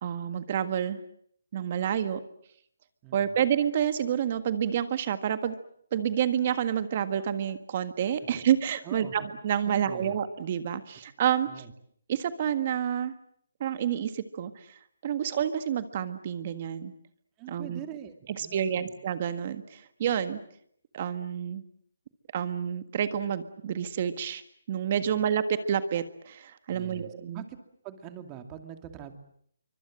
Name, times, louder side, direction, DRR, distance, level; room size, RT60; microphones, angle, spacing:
voice 1, 0.0-1.0 1.5-2.2 3.1-5.5 5.9-11.5 12.1-13.1 13.6-16.9 17.5-17.8 18.4-20.4 20.9-21.6 22.3-24.4 24.7-27.4, right 9 dB, 35° right, 11 dB, 1.6 m, -29 dB
voice 2, 3.0-3.4 8.3-8.4 8.8-9.3 9.6-10.2 11.5-11.7 17.4-19.0 25.0-25.3 26.7-27.6 27.8-29.1, right 9 dB, 20° right, 7 dB, 2.4 m, -44 dB
26.0 x 24.5 x 7.7 m, 0.65 s
hypercardioid pair, 165°, 0 cm